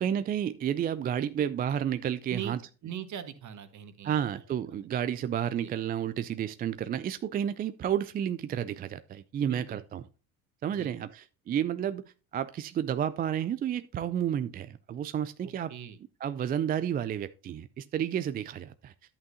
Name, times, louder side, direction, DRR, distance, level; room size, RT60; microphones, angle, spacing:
voice 1, 0.0-2.6 4.0-10.0 10.6-12.0 12.3-15.7 16.2-18.9, right 9 dB, 25° right, 0.3 m, -31 dB
voice 2, 2.8-4.4 4.7-4.8 5.6-5.7 9.5-9.8 10.8-10.9 15.4-16.0, right 9 dB, 45° right, 1.4 m, -41 dB
11.0 x 8.5 x 2.7 m
hypercardioid pair, 65°, 41 cm